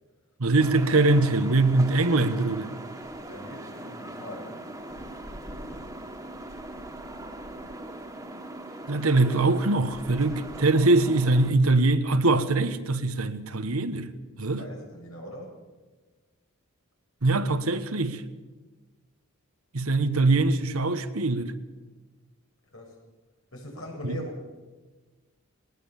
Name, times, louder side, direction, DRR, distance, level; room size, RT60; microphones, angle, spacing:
voice 1, 0.4-2.7 8.9-14.1 14.4-14.6 17.2-18.2 19.7-21.5 24.0-24.2, right 2 dB, 90° right, 1.4 m, -23 dB
sound 1, 0.6-11.5, right 1 dB, 15° right, 2.0 m, -40 dB
voice 2, 3.2-4.7 14.4-15.5 22.7-23.0 23.5-24.3, left 1 dB, 75° left, 7.8 m, -41 dB
20.0 x 19.0 x 7.2 m
head